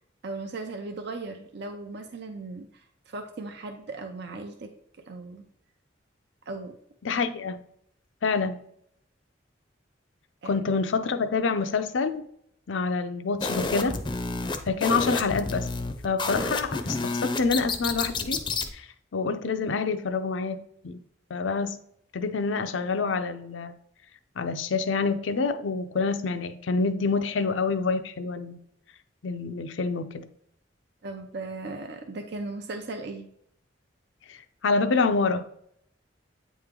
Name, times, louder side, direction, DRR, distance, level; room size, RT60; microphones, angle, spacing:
voice 1, 0.2-4.7 5.1-5.4 6.5-6.7 10.4-10.5 31.0-33.3, right 3 dB, 60° right, 4 dB, 0.6 m, -37 dB
voice 2, 7.0-7.6 8.2-8.6 10.4-12.3 12.7-14.0 14.7-15.7 16.0-18.4 18.7-18.9 19.1-21.0 21.3-21.8 22.1-23.7 24.4-28.6 29.2-30.3 34.3-34.4 34.6-35.5, left 4 dB, 80° left, 10 dB, 0.5 m, -27 dB
sound 1, 13.4-18.7, left 3 dB, 25° left, 0.5 m, -30 dB
8.6 x 3.1 x 3.7 m, 0.69 s
head